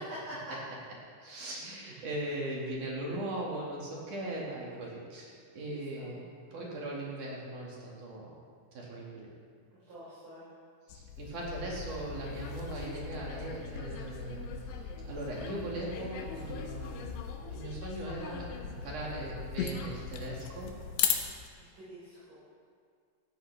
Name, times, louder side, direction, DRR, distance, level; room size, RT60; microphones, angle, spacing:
voice 1, 1.2-8.4 8.7-9.3 10.9-17.2 17.5-20.7, right 1 dB, 50° right, -4 dB, 3.1 m, -39 dB
voice 2, 9.9-10.5 21.6-22.4, right 1 dB, 30° right, -11 dB, 4.6 m, -46 dB
sound 1, 10.9-21.5, left 7 dB, 80° left, 3.0 m, -38 dB
17.5 x 12.5 x 3.5 m, 2.1 s
omnidirectional pair, 5.2 m